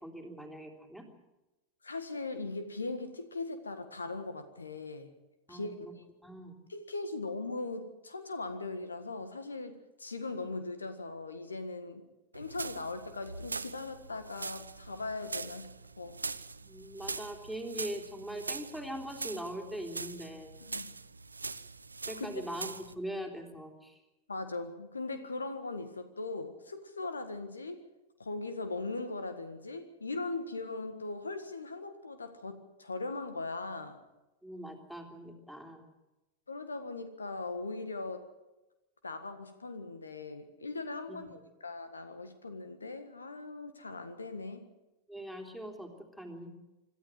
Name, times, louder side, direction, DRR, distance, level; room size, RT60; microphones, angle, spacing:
voice 1, 0.0-1.1 5.5-5.9 6.2-6.5 16.6-20.5 22.1-24.0 34.4-35.9 41.1-41.2 45.1-46.5, right 1 dB, 5° left, 3 dB, 3.6 m, -41 dB
voice 2, 1.8-5.1 5.5-6.0 6.7-12.0 12.3-15.7 16.0-16.2 20.6-20.9 22.1-22.5 24.3-27.8 28.2-34.0 36.5-38.3 39.0-44.7, left 3 dB, 75° left, 10 dB, 1.7 m, -39 dB
sound 1, 12.3-22.9, right 4 dB, 80° right, 0.7 m, -42 dB
26.5 x 13.0 x 9.0 m, 1.0 s
figure-of-eight pair, 90°, 0 cm